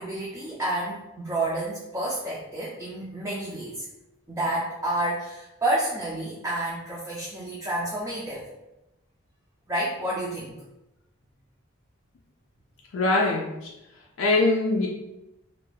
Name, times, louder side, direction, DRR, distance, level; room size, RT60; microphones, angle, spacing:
voice 1, 0.0-3.9 4.3-8.5 9.7-10.6, right 1 dB, 15° right, -6 dB, 0.4 m, -29 dB
voice 2, 12.9-13.5 14.2-14.9, left 2 dB, 80° left, -1 dB, 0.4 m, -22 dB
2.5 x 2.2 x 3.2 m, 0.93 s
head